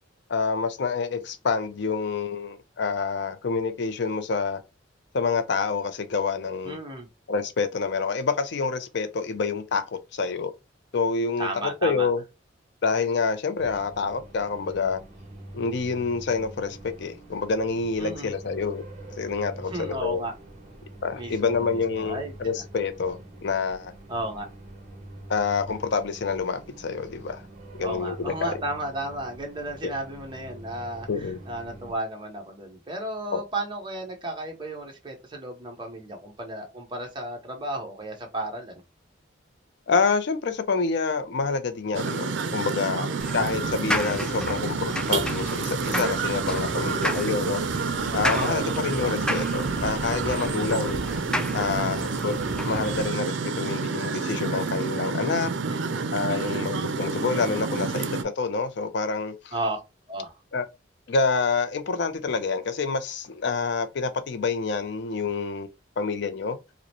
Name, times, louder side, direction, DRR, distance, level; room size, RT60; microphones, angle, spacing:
voice 1, 0.3-4.6 5.1-6.8 7.3-10.5 10.9-12.2 12.8-15.0 15.5-18.8 19.2-20.2 21.0-23.9 25.3-27.4 27.8-28.5 29.8-29.9 31.1-31.4 33.3-33.4 39.9-43.1 43.3-47.6 48.1-51.0 51.5-52.4 52.6-55.5 56.1-59.5 60.5-60.6 61.1-65.7 66.0-66.6, left 4 dB, 65° left, 0.5 m, -27 dB
voice 2, 6.6-7.1 11.4-12.1 18.0-18.3 19.7-20.3 21.2-22.3 24.1-24.5 27.8-38.8 42.9-43.2 46.8-47.2 48.3-48.7 50.3-50.7 55.7-56.6 59.5-59.8 60.1-60.4, right 1 dB, 25° right, 1.2 m, -34 dB
sound 1, 13.6-31.9, right 1 dB, 40° right, 1.1 m, -44 dB
sound 2, 41.9-58.2, right 4 dB, 70° right, 0.5 m, -29 dB
sound 3, 43.2-53.1, left 1 dB, 5° left, 0.4 m, -33 dB
4.8 x 2.1 x 3.0 m
head